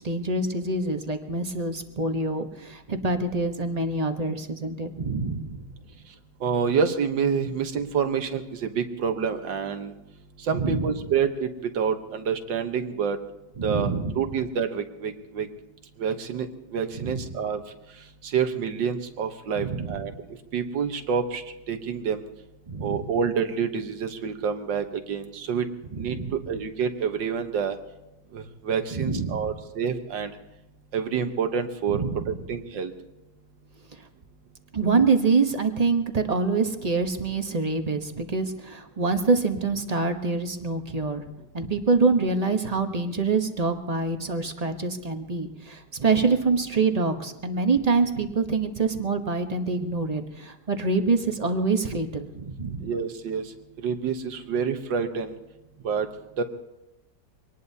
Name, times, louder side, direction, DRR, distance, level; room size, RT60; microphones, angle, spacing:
voice 1, 0.0-5.6 10.5-10.9 13.6-14.3 16.9-17.3 19.6-20.2 22.7-23.0 25.9-26.3 28.9-29.5 31.9-32.4 34.7-41.2 41.5-52.9, right 4 dB, 25° right, 6 dB, 0.9 m, -26 dB
voice 2, 6.4-9.9 10.5-11.5 11.8-13.2 13.6-13.9 14.2-15.5 16.0-16.5 16.7-17.6 18.3-20.1 20.5-21.4 21.7-22.2 22.8-25.7 26.0-27.8 28.3-30.3 30.9-32.0 32.5-32.9 52.8-53.4 53.8-55.3 55.8-56.1 56.4-56.5, right 6 dB, 85° right, 7 dB, 1.8 m, -27 dB
24.5 x 19.0 x 2.8 m, 0.93 s
omnidirectional pair, 1.9 m